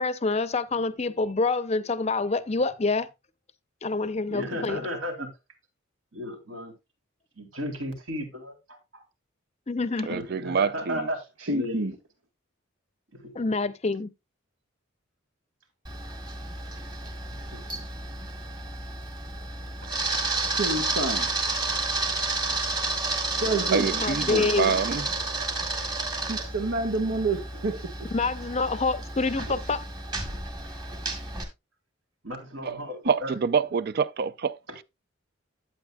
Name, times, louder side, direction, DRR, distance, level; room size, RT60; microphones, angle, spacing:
voice 1, 0.0-3.1 3.8-4.8 9.7-10.2 13.3-14.1 23.9-24.7 28.1-29.8, left 3 dB, 30° left, 0.6 m, -27 dB
voice 2, 4.3-5.3 6.1-6.7 7.4-8.5 10.0-11.2 11.5-11.8 13.2-13.3 17.5-17.8 19.8-20.2 23.4-25.1 32.2-33.3 34.7-34.8, equal, 70° right, 3.4 m, -35 dB
voice 3, 10.1-11.1 23.7-25.0 32.6-32.8 33.1-34.6, right 6 dB, 50° right, 0.4 m, -26 dB
voice 4, 11.4-11.9 20.5-21.3 23.4-23.9 26.3-27.7, right 2 dB, 85° right, 1.5 m, -28 dB
Camera, 15.8-31.4, right 3 dB, 20° right, 2.0 m, -31 dB
11.5 x 8.6 x 2.3 m
head